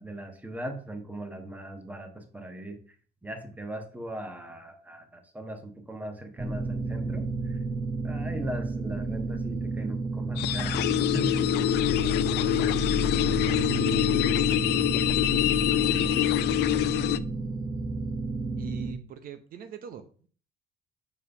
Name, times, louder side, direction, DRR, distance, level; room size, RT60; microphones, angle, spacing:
voice 1, 0.0-2.8 3.2-7.6 8.0-11.4, right 1 dB, 10° right, 6 dB, 1.3 m, -39 dB
sound 1, 6.4-18.9, right 2 dB, 25° right, 0.9 m, -31 dB
sound 2, 10.4-17.2, left 16 dB, 80° left, 0.4 m, -25 dB
voice 2, 11.7-12.3 13.2-17.1 18.6-20.0, right 8 dB, 60° right, 9 dB, 0.8 m, -46 dB
5.5 x 4.7 x 5.8 m, 0.43 s
cardioid pair, 110°, 17 cm